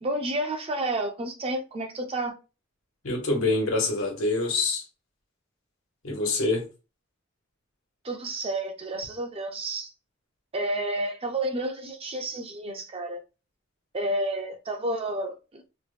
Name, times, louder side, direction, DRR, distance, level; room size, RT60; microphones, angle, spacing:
voice 1, 0.0-2.4 8.0-9.9 10.5-13.2 13.9-15.7, right 1 dB, 30° right, 0.5 m, -30 dB
voice 2, 3.0-4.8 6.0-6.7, left 3 dB, 85° left, 1.3 m, -25 dB
3.0 x 2.2 x 3.2 m
head